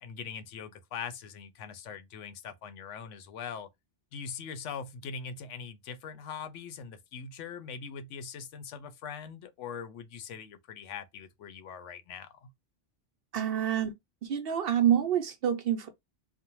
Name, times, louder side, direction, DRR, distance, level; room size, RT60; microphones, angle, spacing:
voice 1, 0.0-3.7 4.1-12.5, left 6 dB, 90° left, 0.9 m, -42 dB
voice 2, 13.3-13.9 14.2-15.9, right 9 dB, 65° right, 0.7 m, -27 dB
2.5 x 2.1 x 2.9 m
omnidirectional pair, 1.2 m